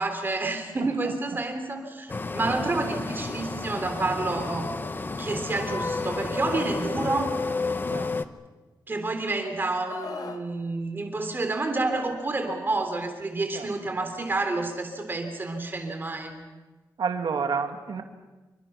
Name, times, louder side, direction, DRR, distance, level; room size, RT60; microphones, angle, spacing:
voice 1, 0.0-4.8 5.2-7.4 8.9-16.4, right 2 dB, 30° right, 6 dB, 3.3 m, -29 dB
voice 2, 0.8-1.1 7.9-8.2 13.5-13.7 17.0-18.0, right 5 dB, 80° right, 5 dB, 2.2 m, -30 dB
sound 1, 2.1-8.3, left 3 dB, 30° left, 0.9 m, -31 dB
Screaming, 9.9-10.5 11.9-12.2, left 5 dB, 60° left, 1.7 m, -39 dB
27.0 x 24.5 x 6.0 m, 1.2 s
wide cardioid pair, 175°, 7 cm